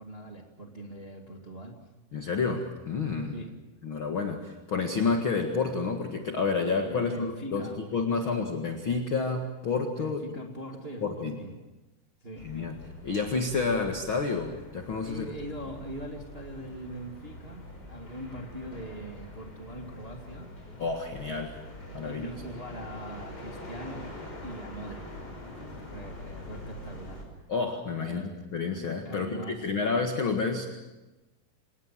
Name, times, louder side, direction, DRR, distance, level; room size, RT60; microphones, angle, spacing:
voice 1, 0.0-1.8 3.3-3.5 6.8-7.8 8.1-8.2 9.9-11.6 12.2-12.5 15.0-20.5 22.0-24.2 24.4-25.1 25.4-27.2 28.0-28.3 29.0-29.7, right 1 dB, 20° right, 1 dB, 1.6 m, -42 dB
voice 2, 2.1-3.3 3.8-10.2 11.0-11.3 12.4-12.8 13.0-15.2 20.8-21.6 21.9-22.3 27.5-30.7, left 4 dB, 45° left, 4 dB, 1.8 m, -29 dB
sound 1, 12.4-27.2, left 1 dB, 25° left, 5.6 m, -44 dB
27.0 x 19.5 x 7.5 m, 1.1 s
omnidirectional pair, 4.7 m